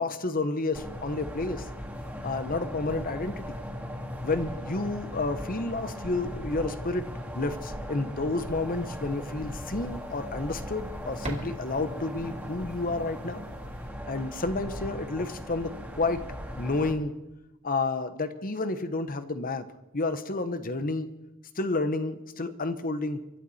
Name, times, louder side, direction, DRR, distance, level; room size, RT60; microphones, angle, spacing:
voice 1, 0.0-1.7 2.2-3.6 4.2-7.1 7.3-13.4 14.1-16.2 16.6-17.1 17.6-19.7 19.9-21.1 21.5-23.2, left 3 dB, 40° left, 11 dB, 1.1 m, -30 dB
sound 1, 0.7-17.0, equal, 5° right, 2.7 m, -38 dB
sound 2, 8.4-13.9, right 1 dB, 35° right, 2.9 m, -46 dB
24.5 x 12.0 x 4.3 m, 0.93 s
head